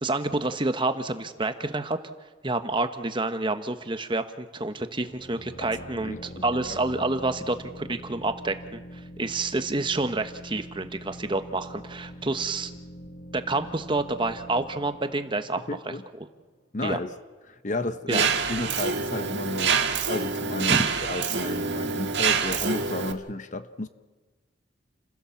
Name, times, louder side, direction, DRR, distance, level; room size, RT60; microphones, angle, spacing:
voice 1, 0.0-2.0 2.4-12.7 13.3-15.8 16.8-17.0 18.1-18.2 20.7-20.9, right 2 dB, 25° right, 1.1 m, -28 dB
sound 1, 4.9-16.4, equal, 55° left, 2.0 m, -44 dB
voice 2, 6.0-6.4 15.7-16.0 16.7-17.1 17.5-19.8 20.1-23.9, left 2 dB, 40° left, 1.0 m, -32 dB
Mechanisms, 18.1-23.1, right 6 dB, 60° right, 1.7 m, -26 dB
29.5 x 16.0 x 7.1 m
head